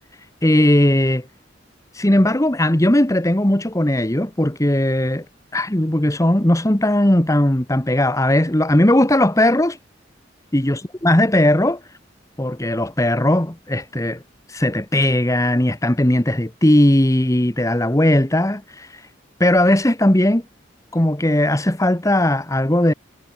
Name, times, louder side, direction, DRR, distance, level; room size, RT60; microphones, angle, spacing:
voice 1, 0.4-1.3 1.9-5.2 5.5-9.8 10.5-11.8 12.4-14.2 14.5-18.9 19.4-20.4 20.9-22.9, left 1 dB, 15° left, 1.3 m, -18 dB
head